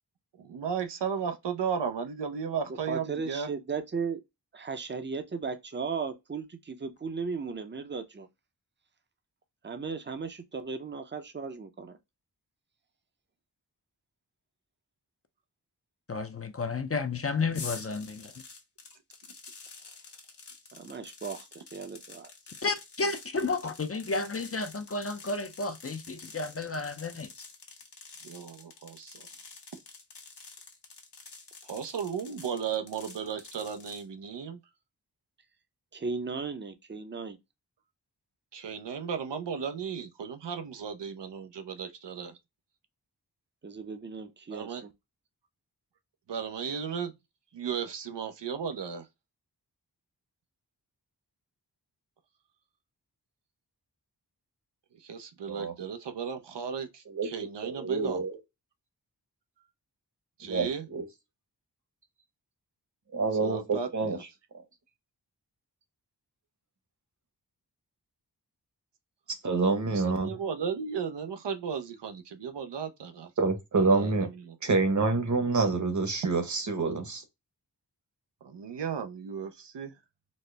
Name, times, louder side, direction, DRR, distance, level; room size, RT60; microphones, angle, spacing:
voice 1, 0.4-3.5 28.2-29.3 31.6-34.6 38.5-42.4 44.5-44.8 46.3-47.1 47.5-49.1 55.0-58.2 60.4-60.9 63.4-64.2 69.9-73.3 73.9-74.6 78.4-79.9, right 7 dB, 90° right, 0.6 m, -35 dB
voice 2, 2.7-4.2 4.5-8.3 9.6-12.0 20.7-22.3 35.9-37.4 43.6-44.9, right 5 dB, 25° right, 0.6 m, -36 dB
voice 3, 16.1-18.3 22.6-27.5, left 3 dB, 35° left, 0.5 m, -32 dB
sound 1, 17.5-34.0, left 4 dB, 75° left, 1.0 m, -48 dB
voice 4, 57.6-58.4 60.4-61.0 63.1-64.2 69.3-70.3 73.4-74.3 74.6-77.2, right 3 dB, 45° right, 0.9 m, -27 dB
4.2 x 2.0 x 3.2 m
wide cardioid pair, 65°, 41 cm